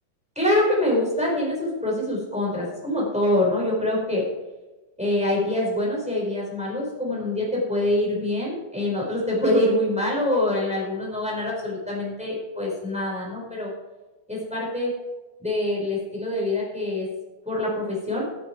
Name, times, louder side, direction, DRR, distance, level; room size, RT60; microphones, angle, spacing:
voice 1, 0.3-4.2 5.0-13.7 14.3-14.9 15.4-17.1 17.4-18.2, left 1 dB, ahead, -4 dB, 5.0 m, -25 dB
13.5 x 11.0 x 4.8 m, 1.1 s
omnidirectional pair, 4.5 m